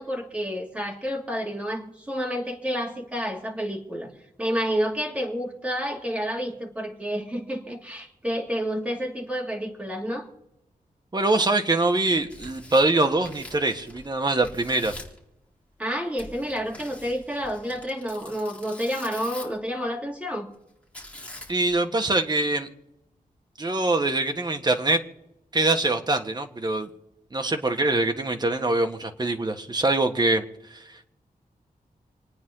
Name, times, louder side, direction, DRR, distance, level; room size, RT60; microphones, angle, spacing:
voice 1, 0.0-4.1 4.4-10.3 15.8-20.5, equal, 10° right, 1 dB, 2.6 m, -29 dB
voice 2, 11.1-14.9 21.5-22.7 23.6-25.0 25.5-26.9 27.3-30.4 30.7-31.1, right 2 dB, 30° right, 5 dB, 1.5 m, -24 dB
Tearing, 12.1-14.1 14.4-15.2 16.2-19.7 20.9-21.7, left 1 dB, 10° left, 3.9 m, -44 dB
28.0 x 9.4 x 3.9 m, 0.86 s
wide cardioid pair, 115°, 15 cm